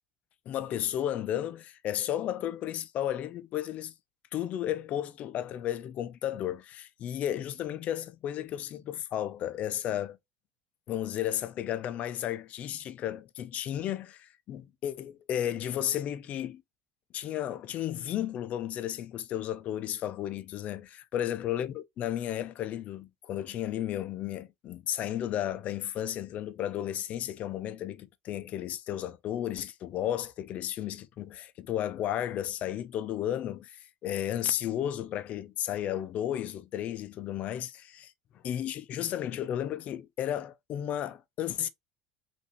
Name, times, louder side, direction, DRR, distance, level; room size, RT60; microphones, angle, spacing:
voice 1, 0.5-3.9 4.3-10.2 10.9-16.6 17.1-38.1 38.4-41.7, left 11 dB, 50° left, 0.6 m, -33 dB
5.6 x 2.7 x 3.1 m
supercardioid pair, 100°, 3 cm